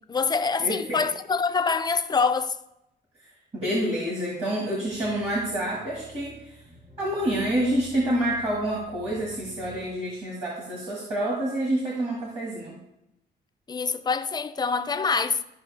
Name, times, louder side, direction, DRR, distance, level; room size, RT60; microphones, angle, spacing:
voice 1, 0.0-2.6 13.7-15.4, left 5 dB, 20° left, 0.3 m, -25 dB
voice 2, 0.6-1.0 3.5-6.6 7.0-12.8, right 1 dB, 30° right, 1.7 m, -28 dB
sound 1, 4.9-9.9, equal, 50° right, 3.4 m, -49 dB
12.5 x 5.5 x 3.3 m
wide cardioid pair, 165°, 19 cm